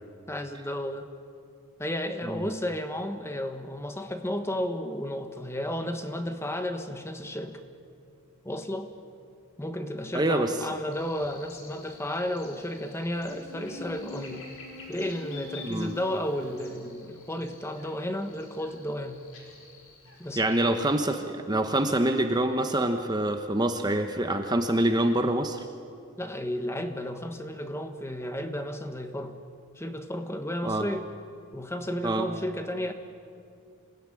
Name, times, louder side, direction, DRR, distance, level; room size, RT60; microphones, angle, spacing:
voice 1, 0.3-1.1 1.8-7.6 8.4-8.9 9.6-14.5 14.9-19.3 20.2-20.5 26.2-29.4 29.8-31.1 31.5-32.9, left 1 dB, 10° left, 7 dB, 1.3 m, -33 dB
voice 2, 10.1-10.5 15.6-15.9 20.4-25.6 30.6-30.9 32.0-32.3, right 1 dB, 20° right, 6 dB, 1.0 m, -25 dB
Buzz, 10.9-20.9, left 3 dB, 70° left, 5.2 m, -47 dB
27.0 x 17.5 x 10.0 m, 2.4 s
head